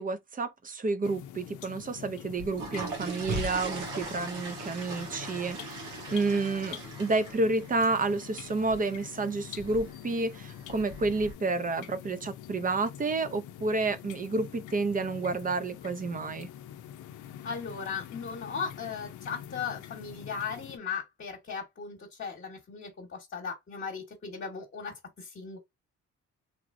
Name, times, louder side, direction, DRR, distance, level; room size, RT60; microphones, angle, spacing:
voice 1, 0.0-16.5, right 3 dB, 30° right, 0.6 m, -30 dB
sound 1, 1.0-20.8, left 10 dB, 80° left, 0.5 m, -45 dB
sound 2, 2.3-11.3, right 3 dB, 85° right, 1.2 m, -40 dB
voice 2, 17.4-25.6, left 6 dB, 40° left, 1.1 m, -37 dB
3.1 x 2.9 x 2.5 m
cardioid pair, 90°, 30 cm